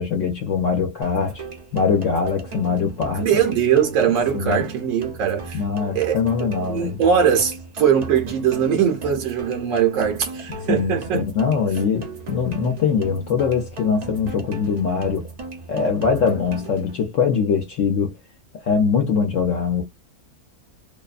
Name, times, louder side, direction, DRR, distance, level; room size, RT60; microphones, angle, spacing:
voice 1, 0.0-1.4 1.7-3.3 4.3-4.6 5.5-7.0 10.7-15.3 15.7-18.1 18.6-19.8, left 5 dB, 65° left, 0.9 m, -22 dB
sound 1, 1.0-17.0, right 2 dB, 45° right, 0.5 m, -37 dB
voice 2, 3.1-5.6 5.9-11.2, right 8 dB, 65° right, 0.9 m, -21 dB
2.7 x 2.1 x 2.4 m
omnidirectional pair, 1.6 m